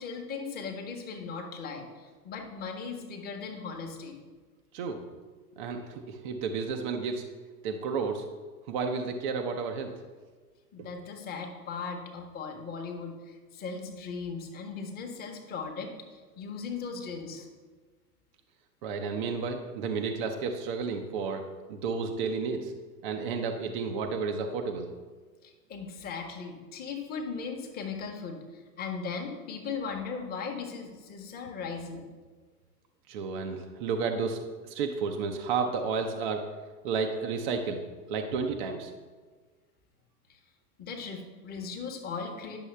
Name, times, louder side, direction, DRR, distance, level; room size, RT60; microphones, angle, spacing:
voice 1, 0.0-4.2 10.7-17.5 19.9-20.0 25.4-32.0 40.3-40.4 40.8-42.6, left 5 dB, 20° left, 2 dB, 1.0 m, -38 dB
voice 2, 5.6-7.2 7.6-8.3 8.7-9.9 18.8-22.7 23.0-24.9 33.1-36.5 36.8-37.8 38.1-38.9, right 5 dB, 30° right, 4 dB, 0.5 m, -32 dB
10.0 x 6.1 x 3.3 m, 1.4 s
figure-of-eight pair, 100°, 50 cm